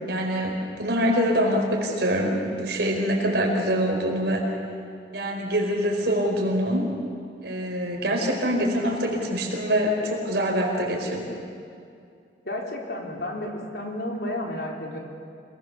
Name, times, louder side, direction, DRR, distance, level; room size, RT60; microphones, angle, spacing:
voice 1, 0.1-4.5 5.1-6.9 7.4-11.4, equal, 65° right, 1 dB, 4.7 m, -25 dB
voice 2, 12.5-15.0, left 1 dB, 60° left, 0 dB, 3.8 m, -32 dB
27.5 x 20.0 x 7.1 m, 2.5 s
head